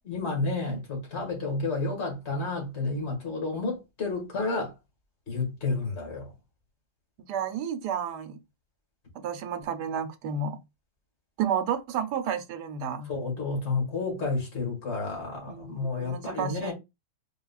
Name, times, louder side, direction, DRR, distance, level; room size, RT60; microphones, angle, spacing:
voice 1, 0.1-4.7 5.3-6.3 13.1-16.7, left 3 dB, 40° left, 2.1 m, -30 dB
voice 2, 7.3-8.4 9.1-10.6 11.4-13.1 15.5-16.7, right 7 dB, 85° right, 1.3 m, -31 dB
4.6 x 3.6 x 2.3 m
omnidirectional pair, 1.8 m